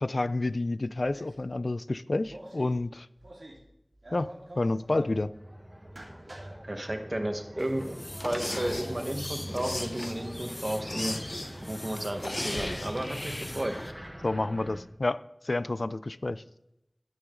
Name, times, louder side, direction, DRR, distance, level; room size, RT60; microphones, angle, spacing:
voice 1, 0.0-3.1 4.1-5.3 14.2-15.2 15.4-16.4, left 2 dB, 90° left, 15 dB, 0.4 m, -29 dB
sound 1, 1.0-1.5 2.2-2.7 3.2-3.6 3.9-5.2 5.8-6.5, right 1 dB, 85° right, 2.5 m, -47 dB
sound 2, 4.7-14.8, equal, 15° right, 1.7 m, -43 dB
voice 2, 6.6-11.2 11.6-13.7, right 1 dB, 50° right, 5 dB, 1.5 m, -33 dB
sound 3, 7.6-13.9, left 1 dB, 55° left, 0.9 m, -37 dB
13.0 x 8.7 x 3.9 m, 0.83 s
wide cardioid pair, 40°, 0 cm